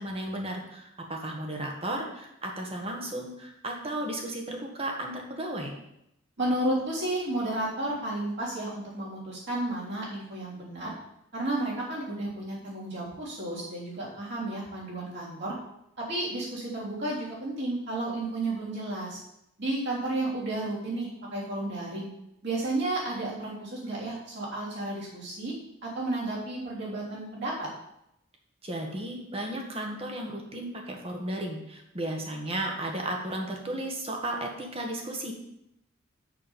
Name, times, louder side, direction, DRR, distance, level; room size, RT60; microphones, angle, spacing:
voice 1, 0.0-5.7 28.6-35.3, right 1 dB, 25° right, 1 dB, 1.6 m, -34 dB
voice 2, 6.4-10.9 11.3-15.6 16.0-19.2 19.6-22.1 22.4-25.5 25.8-27.7, right 2 dB, 55° right, -6 dB, 3.6 m, -32 dB
6.6 x 6.2 x 7.3 m, 0.82 s
head